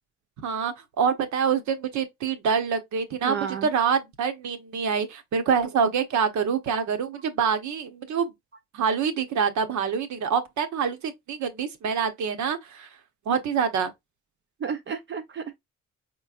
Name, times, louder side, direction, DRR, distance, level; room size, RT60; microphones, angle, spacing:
voice 1, 0.4-8.3 8.7-12.9 13.3-13.9, right 6 dB, 70° right, 1.0 m, -26 dB
voice 2, 3.2-3.7 14.6-15.6, right 6 dB, 40° right, 0.5 m, -32 dB
4.5 x 3.1 x 2.4 m
cardioid pair, 90°, 30 cm